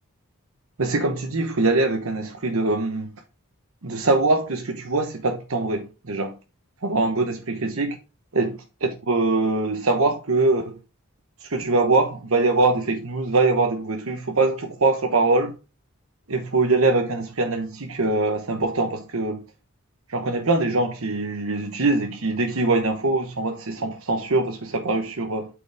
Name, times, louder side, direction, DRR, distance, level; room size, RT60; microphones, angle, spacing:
voice 1, 0.8-3.1 3.8-6.3 6.8-8.0 8.3-8.5 8.8-10.8 11.4-15.5 16.3-19.4 20.1-25.5, right 3 dB, 70° right, 1.1 m, -23 dB
8.4 x 5.1 x 3.4 m
head